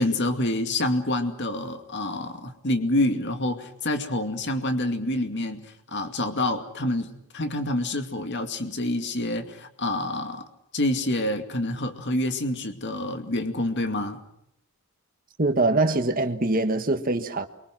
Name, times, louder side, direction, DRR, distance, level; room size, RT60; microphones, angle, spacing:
voice 1, 0.0-10.4 10.7-14.2, left 1 dB, 50° left, 2.4 m, -27 dB
voice 2, 15.4-17.5, right 2 dB, 40° right, 1.6 m, -23 dB
29.0 x 23.5 x 6.1 m
head